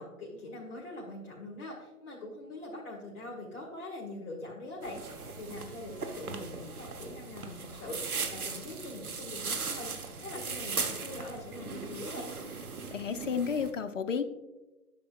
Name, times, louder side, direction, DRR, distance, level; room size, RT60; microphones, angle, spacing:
voice 1, 0.0-12.3, left 2 dB, 45° left, -5 dB, 1.9 m, -43 dB
sound 1, 4.8-13.7, right 4 dB, 75° right, 1.2 m, -38 dB
voice 2, 12.9-14.2, left 6 dB, 60° left, 10 dB, 0.7 m, -31 dB
11.0 x 6.6 x 2.4 m, 1.1 s
figure-of-eight pair, 135°, 43 cm